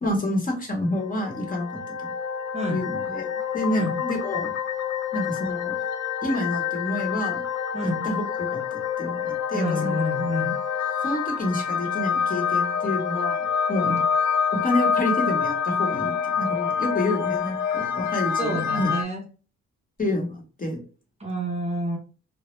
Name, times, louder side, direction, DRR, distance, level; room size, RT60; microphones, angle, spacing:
voice 1, 0.0-2.1 2.7-3.3 3.5-4.5 5.1-5.7 6.2-7.4 7.8-10.0 11.0-13.9 14.5-18.9 20.0-20.8, left 1 dB, 30° left, 2 dB, 0.8 m, -28 dB
sound 1, 0.9-19.0, left 7 dB, 80° left, 0.5 m, -27 dB
voice 2, 2.5-2.9 3.7-4.0 7.7-8.1 9.5-10.6 13.9-14.1 18.4-19.3 21.2-22.0, equal, 20° right, 0 dB, 0.6 m, -29 dB
2.0 x 2.0 x 3.0 m, 0.37 s
cardioid pair, 90°, 30 cm